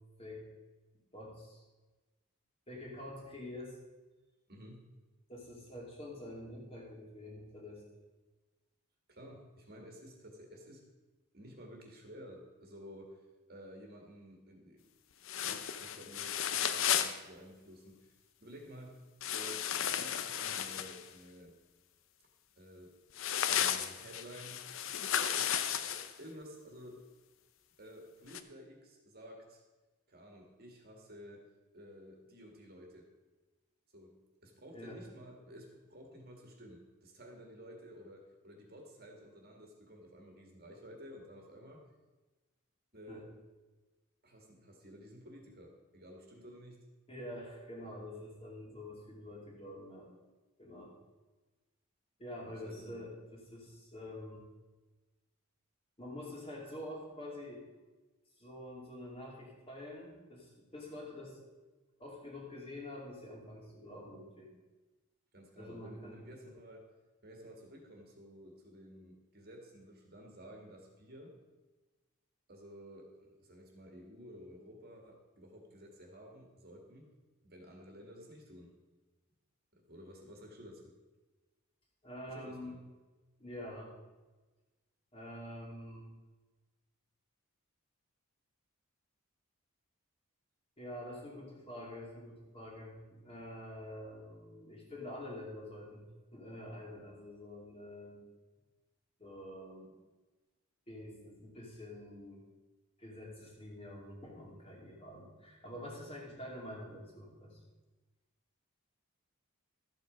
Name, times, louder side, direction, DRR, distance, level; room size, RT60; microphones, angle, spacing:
voice 1, 1.1-1.6 2.7-3.8 5.3-7.8 34.7-35.0 43.1-43.2 47.1-50.1 50.6-50.9 52.2-54.5 56.0-57.7 58.4-61.4 62.0-64.5 65.6-66.2 82.0-82.8 83.4-83.9 85.1-86.1 90.8-96.0 96.3-98.2 99.2-99.9 100.9-102.4 103.0-107.6, left 1 dB, 25° left, -2 dB, 2.6 m, -47 dB
voice 2, 4.5-4.8 9.1-10.8 11.3-13.2 13.5-14.9 15.4-18.1 18.4-19.0 19.3-21.5 22.6-23.0 23.5-24.8 25.2-25.6 25.9-27.0 27.8-29.6 30.1-31.5 31.7-33.1 33.9-41.8 42.9-43.3 44.2-46.8 52.4-53.1 65.3-66.9 67.2-71.4 72.5-77.1 77.4-78.7 79.7-80.9 82.3-82.8, equal, 45° right, 1 dB, 1.9 m, -53 dB
sound 1, 15.2-17.2 19.2-21.0 23.2-26.1 28.3-28.4, left 9 dB, 60° left, 0.6 m, -34 dB
13.0 x 8.1 x 5.2 m, 1.2 s
head